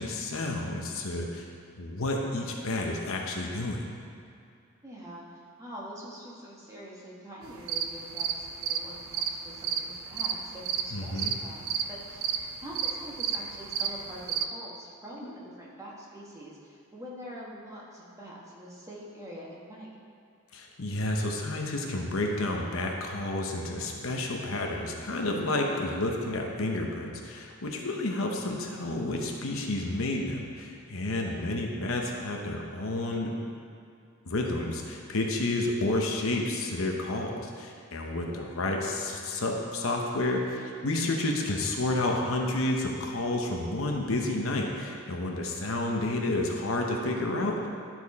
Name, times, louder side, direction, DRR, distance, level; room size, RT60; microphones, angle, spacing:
voice 1, 0.0-1.5 1.8-3.9 10.9-11.3 15.2-15.4 20.5-33.4 34.2-47.7, left 2 dB, 65° left, 1 dB, 0.9 m, -30 dB
voice 2, 4.8-12.3 12.6-19.9 27.8-28.0 31.1-31.5 38.2-38.6, equal, 15° right, -5 dB, 1.3 m, -45 dB
sound 1, 7.4-14.4, right 8 dB, 65° right, 0.5 m, -32 dB
12.0 x 4.5 x 4.2 m, 2.5 s
head